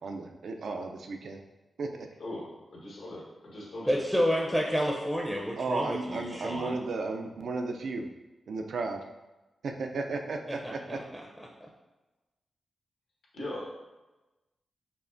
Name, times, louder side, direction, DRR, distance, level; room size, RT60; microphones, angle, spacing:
voice 1, 0.0-1.4 1.8-2.1 5.6-8.1 8.5-9.0 9.6-11.0, right 3 dB, 75° right, 4 dB, 0.4 m, -34 dB
voice 2, 2.2-4.0 13.3-13.6, left 1 dB, 80° left, -4 dB, 1.2 m, -40 dB
voice 3, 3.9-6.8 10.5-11.5, equal, ahead, -1 dB, 0.5 m, -30 dB
5.5 x 2.1 x 2.5 m, 1.1 s
cardioid pair, 65°, 0 cm